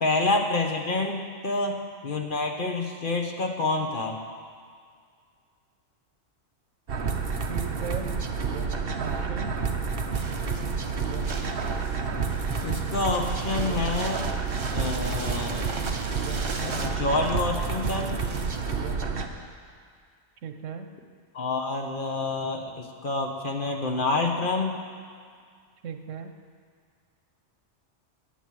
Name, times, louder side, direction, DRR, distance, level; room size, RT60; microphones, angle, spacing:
voice 1, 0.0-4.2 12.6-14.3 14.7-15.7 16.6-18.2 21.3-24.8, left 3 dB, 45° left, 2 dB, 1.2 m, -28 dB
sound 1, 6.9-19.3, right 5 dB, 55° right, 1.1 m, -29 dB
voice 2, 7.5-8.1 9.0-9.6 20.4-20.9 25.8-26.3, right 6 dB, 85° right, 7 dB, 1.2 m, -36 dB
sound 2, 10.1-18.8, right 3 dB, 30° right, 0.6 m, -40 dB
11.5 x 9.3 x 7.5 m, 2.1 s
omnidirectional pair, 1.3 m